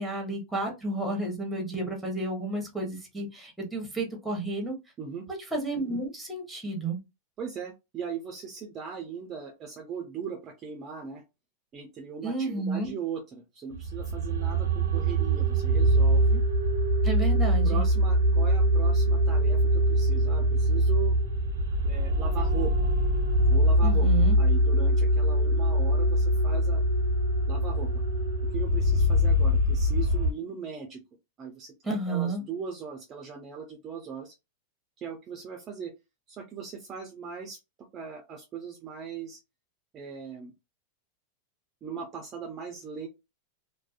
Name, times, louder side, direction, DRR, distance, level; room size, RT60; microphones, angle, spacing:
voice 1, 0.0-4.7 5.5-7.0 12.2-12.9 17.0-17.8 23.8-24.4 31.8-32.4, right 2 dB, 5° right, 1 dB, 1.0 m, -31 dB
voice 2, 7.4-11.2 11.7-16.4 17.6-21.2 21.8-22.9 23.4-24.1 24.4-26.8 27.5-28.0 28.5-31.0 31.4-34.3 35.0-35.9 36.3-37.6 37.9-39.4 39.9-40.5 41.8-43.1, right 6 dB, 30° right, 4 dB, 0.5 m, -39 dB
sound 1, 13.7-30.3, equal, 90° right, 0.6 m, -23 dB
2.5 x 2.1 x 2.4 m, 0.24 s
supercardioid pair, 130°, 0 cm